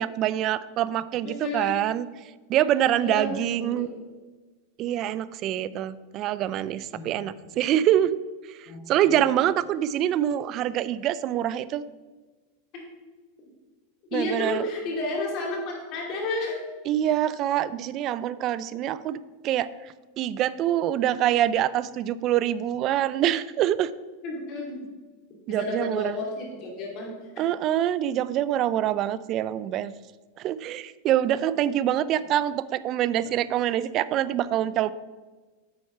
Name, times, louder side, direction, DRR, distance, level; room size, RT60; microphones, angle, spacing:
voice 1, 0.0-2.1 2.5-3.9 4.8-8.2 8.9-11.8 14.1-14.6 16.9-19.2 19.4-19.7 20.2-23.9 25.5-26.2 27.4-29.9 30.4-34.9, right 11 dB, 40° right, 16 dB, 0.4 m, -25 dB
voice 2, 1.2-1.7 3.0-3.9 6.9-7.1 8.7-8.8 14.1-16.6 24.2-24.8 25.5-27.1 27.4-27.5, left 2 dB, 45° left, -1 dB, 2.7 m, -31 dB
8.6 x 4.5 x 5.8 m, 1.3 s
supercardioid pair, 130°, 0 cm